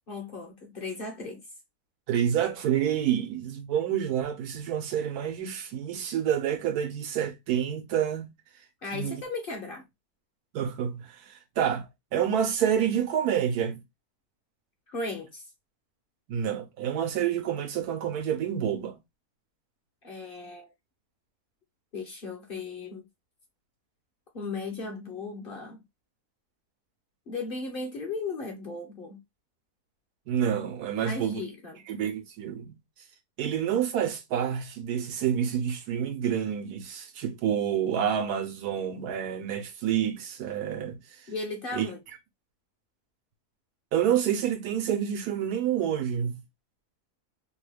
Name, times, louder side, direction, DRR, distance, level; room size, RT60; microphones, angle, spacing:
voice 1, 0.1-1.4 8.8-9.9 14.9-15.4 20.0-20.7 21.9-23.1 24.3-25.8 27.3-29.2 31.0-31.8 41.3-42.0, left 3 dB, 45° left, 0.8 m, -36 dB
voice 2, 2.1-8.3 8.9-9.2 10.5-13.8 16.3-19.0 30.3-31.4 31.9-32.8 33.4-41.3 41.7-41.8 43.9-46.4, right 9 dB, 80° right, 1.3 m, -28 dB
3.0 x 2.3 x 3.2 m
omnidirectional pair, 1.6 m